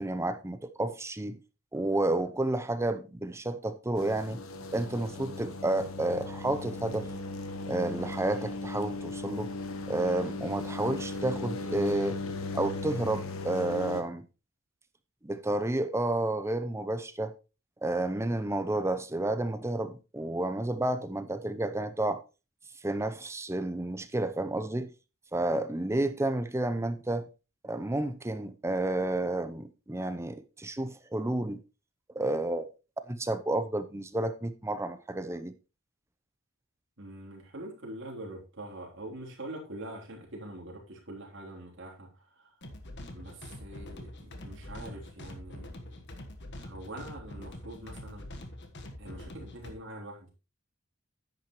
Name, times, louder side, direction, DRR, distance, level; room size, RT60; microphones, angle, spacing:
voice 1, 0.0-1.4 1.7-4.4 4.7-7.1 7.7-9.5 9.9-12.2 12.5-14.3 15.2-17.3 17.8-22.2 22.8-24.9 25.3-27.3 27.6-31.6 32.1-32.7 33.1-35.5, right 1 dB, 15° right, 0.7 m, -31 dB
sound 1, 3.9-14.0, left 2 dB, 80° left, 1.2 m, -37 dB
voice 2, 37.0-42.6 43.1-46.0 46.6-48.3 49.0-50.3, right 1 dB, 65° right, 3.4 m, -44 dB
sound 2, 42.6-49.7, left 1 dB, 55° left, 1.4 m, -44 dB
10.0 x 8.7 x 3.1 m
head